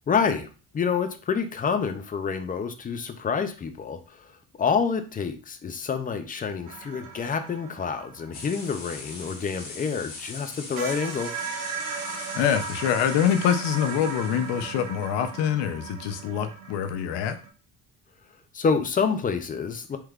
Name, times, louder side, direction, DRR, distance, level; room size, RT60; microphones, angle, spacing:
voice 1, 0.1-0.5 0.7-4.3 4.6-11.3 18.5-20.0, left 6 dB, 25° left, 8 dB, 0.3 m, -27 dB
sound 1, 6.7-10.0 10.4-10.5 10.8-17.5, right 5 dB, 50° right, 0.7 m, -37 dB
sound 2, 8.3-14.9, left 3 dB, 55° left, 1.0 m, -42 dB
voice 2, 12.3-17.4, left 9 dB, 90° left, 10 dB, 0.6 m, -25 dB
3.4 x 3.2 x 2.3 m, 0.35 s
cardioid pair, 120°, 40 cm